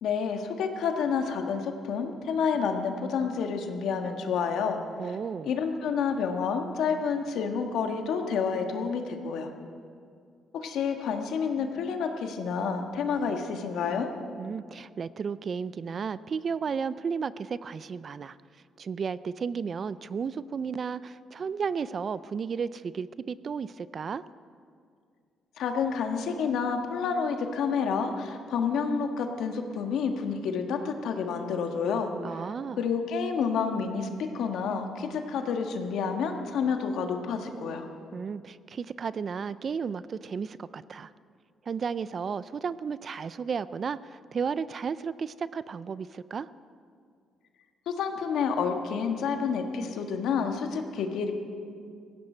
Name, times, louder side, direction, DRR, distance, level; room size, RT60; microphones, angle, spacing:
voice 1, 0.0-4.8 5.4-9.5 10.5-14.1 25.6-32.1 32.8-37.9 47.9-51.3, left 6 dB, 80° left, 5 dB, 1.5 m, -29 dB
voice 2, 5.0-5.5 14.4-18.4 18.8-24.2 32.2-32.8 38.1-41.1 41.7-46.5, right 6 dB, 45° right, 16 dB, 0.4 m, -33 dB
17.5 x 15.5 x 4.5 m, 2.2 s
cardioid pair, 90°, 0 cm